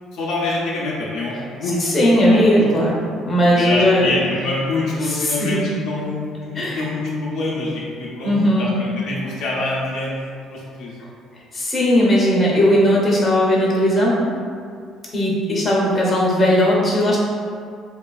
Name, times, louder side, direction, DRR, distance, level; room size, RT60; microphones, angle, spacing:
voice 1, 0.1-1.9 2.2-2.7 3.5-10.2 10.5-10.9, left 2 dB, 70° left, -5 dB, 0.5 m, -26 dB
voice 2, 1.6-3.0 3.2-4.2 5.0-5.7 6.5-6.8 8.2-8.8 11.0-14.2 15.1-17.2, equal, 30° left, -5 dB, 0.7 m, -18 dB
2.9 x 2.4 x 2.3 m, 2.2 s
cardioid pair, 100°, 0 cm